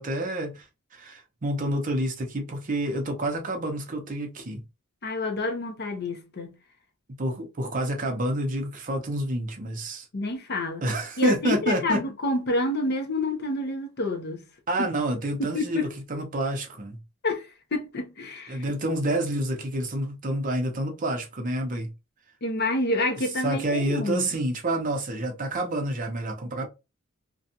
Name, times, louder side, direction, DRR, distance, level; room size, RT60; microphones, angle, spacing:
voice 1, 0.0-4.6 7.2-10.1 10.8-12.0 14.7-17.0 18.5-21.9 23.4-26.7, right 1 dB, 40° right, 0.6 m, -28 dB
voice 2, 5.0-6.6 10.1-10.8 11.2-14.4 14.8-14.9 15.5-15.9 17.2-17.5 17.7-18.6 22.4-24.3, left 2 dB, 50° left, 0.6 m, -28 dB
2.6 x 2.2 x 2.7 m
head